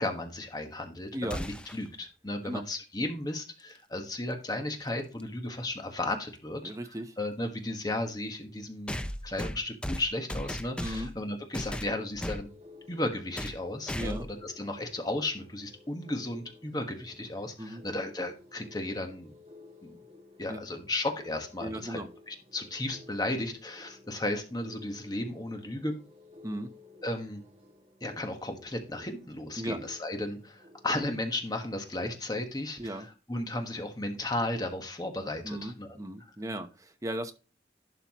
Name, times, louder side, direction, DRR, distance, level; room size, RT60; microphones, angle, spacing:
voice 1, 0.0-9.0 9.2-12.5 12.9-19.3 19.8-20.0 20.4-22.0 22.3-25.9 27.0-27.4 28.0-36.0 36.2-36.3, left 1 dB, 20° left, 1.4 m, -34 dB
sound 1, 1.3-1.9 4.0-4.1 5.2-5.3 8.9-11.2 11.5-12.5 13.4-13.6 13.9-14.4, left 1 dB, 5° left, 0.4 m, -36 dB
voice 2, 6.6-7.1 10.8-11.1 13.9-14.3 17.6-17.8 20.5-20.6 21.6-22.1 26.4-26.7 29.6-29.8 32.8-33.1 35.4-37.3, right 1 dB, 20° right, 0.9 m, -36 dB
sound 2, 12.0-31.5, left 2 dB, 35° right, 2.1 m, -55 dB
11.5 x 5.7 x 3.0 m
head